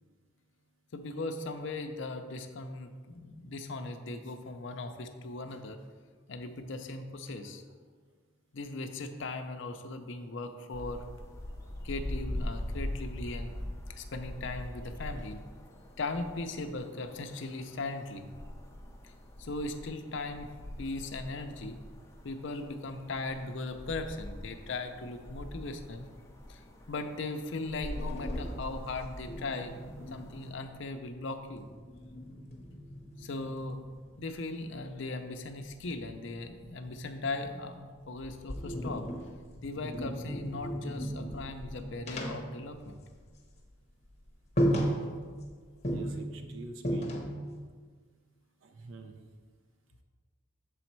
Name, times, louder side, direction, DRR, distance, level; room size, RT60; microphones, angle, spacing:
voice 1, 0.9-5.8 6.3-7.6 8.5-11.0 11.8-13.5 14.0-15.4 16.0-18.3 19.4-20.5 20.8-21.8 22.2-26.1 26.5-26.6 26.9-29.9 30.1-31.7 33.2-33.8 34.2-39.1 39.6-43.0, left 2 dB, 60° left, 7 dB, 0.5 m, -38 dB
sound 1, 10.7-30.5, left 1 dB, 15° left, 0.5 m, -42 dB
sound 2, 27.9-31.1 31.4-34.3 35.7-37.7 38.1-43.4 43.7-43.8 44.2-44.3 44.6-45.5 45.8-47.6, equal, 30° left, 0.8 m, -36 dB
voice 2, 45.9-47.1 48.6-49.2, right 3 dB, 70° right, 5 dB, 0.5 m, -47 dB
6.9 x 4.1 x 4.5 m, 1.5 s
head